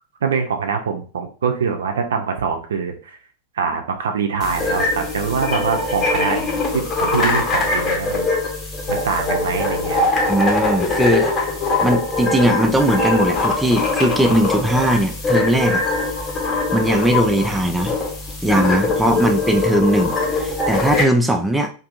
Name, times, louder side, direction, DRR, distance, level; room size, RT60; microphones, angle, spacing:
voice 1, 0.2-3.2 3.5-8.3 8.9-10.1, right 6 dB, 65° right, 5 dB, 0.5 m, -24 dB
sound 1, 4.4-21.0, left 3 dB, 25° left, 0.9 m, -22 dB
voice 2, 10.3-11.3 11.8-15.8 16.7-18.0 18.4-21.7, right 1 dB, 5° right, 4 dB, 0.4 m, -19 dB
2.6 x 2.5 x 2.4 m, 0.37 s
figure-of-eight pair, 90°, 0 cm